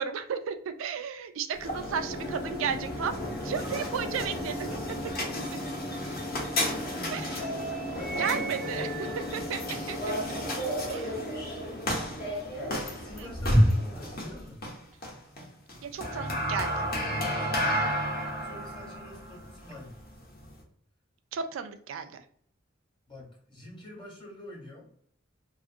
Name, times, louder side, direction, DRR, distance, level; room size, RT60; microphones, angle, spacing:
voice 1, 0.0-3.2 3.4-4.8 7.1-7.4 8.2-8.9 9.2-10.0 10.9-11.1 13.2-13.3 15.8-16.9 21.3-22.1, right 6 dB, 80° right, 9 dB, 0.3 m, -33 dB
sound 1, 1.5-20.6, equal, 50° left, 0.8 m, -31 dB
sound 2, 1.9-10.6, left 2 dB, 5° left, 0.3 m, -42 dB
sound 3, 3.9-5.5 6.3-6.4 7.0-11.5 13.3-14.4, left 1 dB, 80° left, 0.9 m, -49 dB
voice 2, 6.5-7.5 7.9-9.8 11.4-11.9 12.5-14.6 16.9-17.9 18.3-20.0 23.1-24.9, left 1 dB, 25° left, -2 dB, 0.9 m, -46 dB
2.5 x 2.4 x 2.5 m, 0.62 s
head